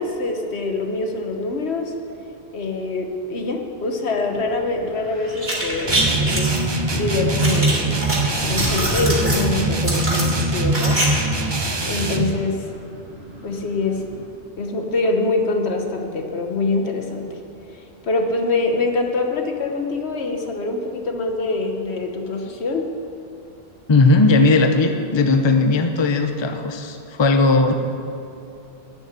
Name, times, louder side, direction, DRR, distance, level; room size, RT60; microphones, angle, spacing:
voice 1, 0.0-1.9 2.5-6.6 6.9-8.0 8.5-11.0 11.3-11.5 11.8-12.7 13.4-14.0 14.6-17.4 17.7-22.9, left 3 dB, 75° left, 4 dB, 1.4 m, -24 dB
Wind, 4.3-14.3, right 1 dB, 75° right, 2.5 m, -35 dB
sound 1, 5.4-6.6 7.4-8.2 8.5-9.4 9.8-11.1 11.3-11.4, right 1 dB, 45° right, 2.7 m, -24 dB
sound 2, 5.9-12.3, right 2 dB, 25° right, 0.8 m, -22 dB
voice 2, 23.9-27.7, left 3 dB, 30° left, 6 dB, 0.7 m, -17 dB
11.5 x 7.1 x 9.6 m, 2.8 s
omnidirectional pair, 1.1 m